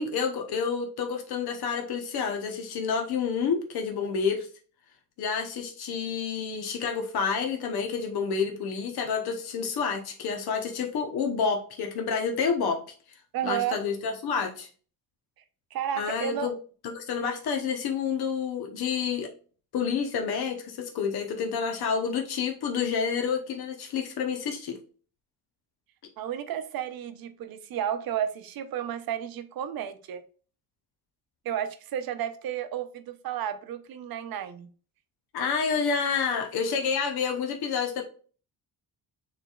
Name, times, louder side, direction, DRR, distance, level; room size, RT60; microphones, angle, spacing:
voice 1, 0.0-4.5 5.2-12.8 13.4-14.7 16.0-16.5 16.9-19.3 19.7-24.8 35.3-38.0, left 6 dB, 75° left, 0.9 m, -29 dB
voice 2, 13.3-13.8 15.7-16.5 26.2-30.2 31.4-34.7, right 10 dB, 70° right, 0.7 m, -32 dB
6.7 x 3.3 x 2.3 m
cardioid pair, 165°, 38 cm